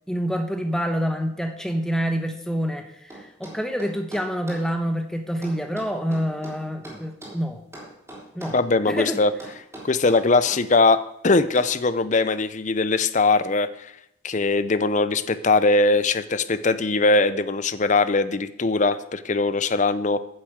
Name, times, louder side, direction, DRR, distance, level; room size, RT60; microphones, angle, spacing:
voice 1, 0.1-7.6 8.3-8.6 8.9-9.2, equal, 5° left, 5 dB, 1.0 m, -27 dB
sound 1, 3.1-4.7 5.4-7.4 7.7-8.7 9.4-10.6 11.5-11.8, right 1 dB, 15° right, 3.5 m, -41 dB
voice 2, 8.5-9.3 9.8-13.9 14.2-20.2, left 3 dB, 35° left, 13 dB, 0.6 m, -21 dB
9.7 x 7.1 x 7.9 m, 0.78 s
head